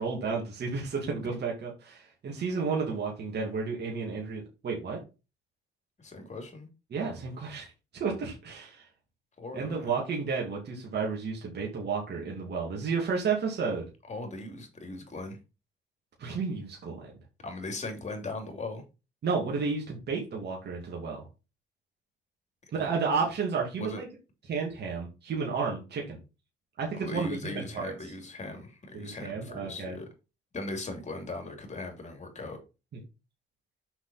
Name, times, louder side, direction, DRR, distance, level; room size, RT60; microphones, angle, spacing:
voice 1, 0.0-5.0 6.9-8.8 9.5-13.9 16.2-17.1 19.2-21.2 22.7-24.1 24.5-26.2 26.8-27.9 28.9-30.0, right 5 dB, 55° right, 2.6 m, -32 dB
voice 2, 6.0-6.7 9.4-10.0 14.1-15.4 17.4-18.8 22.8-22.9 23.8-24.0 27.0-30.1 30.5-32.6, left 2 dB, 35° left, 2.9 m, -39 dB
6.2 x 5.8 x 4.3 m
cardioid pair, 90°, 20 cm